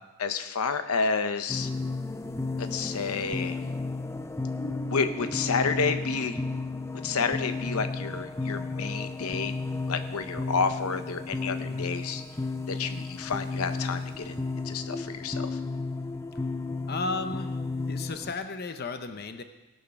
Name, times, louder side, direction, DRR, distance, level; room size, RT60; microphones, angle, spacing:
voice 1, 0.2-1.7 2.6-3.6 4.9-6.4 7.0-9.5 9.9-12.2 12.7-15.6, left 5 dB, 85° left, 9 dB, 0.7 m, -30 dB
sound 1, 1.5-18.3, left 3 dB, 10° left, 0.4 m, -33 dB
voice 2, 16.9-17.6 17.9-19.4, left 3 dB, 45° left, 8 dB, 0.7 m, -34 dB
18.5 x 6.4 x 5.8 m, 1.1 s
head